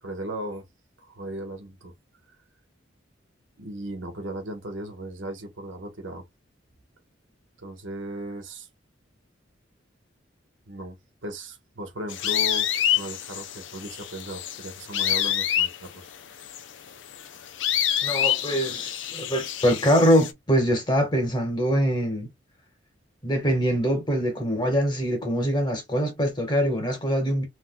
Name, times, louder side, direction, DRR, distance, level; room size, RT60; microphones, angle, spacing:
voice 1, 0.0-0.6 1.1-1.9 3.6-6.2 7.6-8.7 10.7-12.7 12.9-16.1, right 1 dB, 85° right, 1.2 m, -36 dB
sound 1, 12.1-20.3, left 10 dB, 75° left, 0.5 m, -27 dB
voice 2, 18.0-22.3 23.2-27.4, equal, 25° left, 1.2 m, -23 dB
3.2 x 3.2 x 2.2 m
head